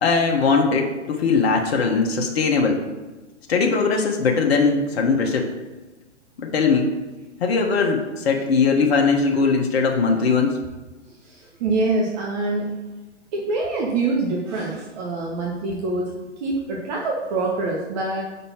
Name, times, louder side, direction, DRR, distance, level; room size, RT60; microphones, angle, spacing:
voice 1, 0.0-2.8 3.5-5.5 6.4-6.9 7.4-10.6, left 4 dB, 55° left, 2 dB, 1.0 m, -20 dB
voice 2, 11.2-12.7 13.3-16.1 16.4-18.2, right 3 dB, 35° right, -2 dB, 1.0 m, -25 dB
5.5 x 4.1 x 5.6 m, 1.2 s
hypercardioid pair, 125°, 36 cm